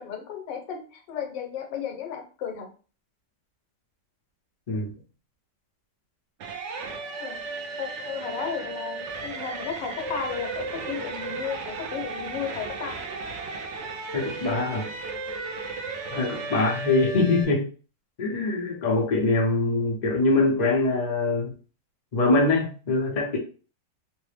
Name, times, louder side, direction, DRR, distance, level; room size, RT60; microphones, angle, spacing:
voice 1, 0.0-2.7 7.2-13.1 16.5-16.6, left 7 dB, 85° left, 3 dB, 1.4 m, -34 dB
sound 1, 6.4-17.4, right 4 dB, 90° right, 0.6 m, -35 dB
voice 2, 14.1-14.9 16.1-17.7 18.2-21.5 22.1-23.4, left 2 dB, 45° left, 0 dB, 0.5 m, -23 dB
3.2 x 2.0 x 3.2 m, 0.37 s
omnidirectional pair, 1.9 m